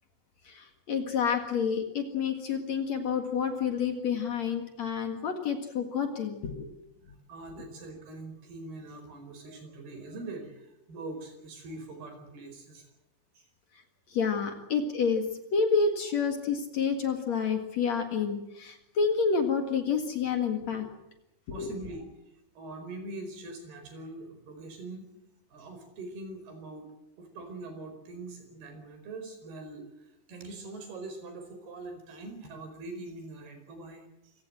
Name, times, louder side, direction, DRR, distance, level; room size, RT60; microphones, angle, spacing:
voice 1, 0.4-6.7 14.1-15.3 15.5-20.9 21.5-21.7, left 6 dB, 50° left, 5 dB, 2.7 m, -29 dB
voice 2, 7.3-12.9 13.3-13.5 21.5-22.0 22.6-25.1 25.5-26.9 27.2-34.3, right 2 dB, 75° right, 6 dB, 6.7 m, -43 dB
26.5 x 17.5 x 7.8 m, 0.91 s
omnidirectional pair, 4.5 m